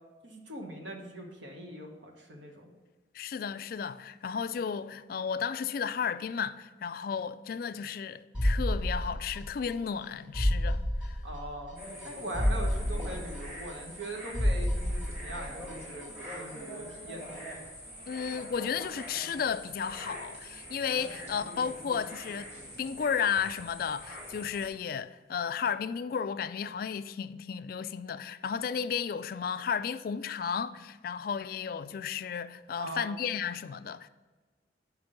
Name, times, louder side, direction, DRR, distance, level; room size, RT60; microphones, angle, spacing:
voice 1, 0.2-2.7 11.2-11.8 12.0-17.4 32.8-33.1, right 1 dB, 80° right, 1.3 m, -41 dB
voice 2, 3.1-11.2 18.1-22.5 22.8-34.1, left 7 dB, 50° left, 0.3 m, -33 dB
sound 1, 8.3-9.7 10.0-10.1 10.3-11.7 12.0-12.1 12.3-14.1 14.3-15.7 16.0-16.1, equal, 5° right, 1.4 m, -30 dB
sound 2, 11.8-24.7, equal, 40° right, 2.3 m, -44 dB
5.9 x 5.1 x 6.4 m
head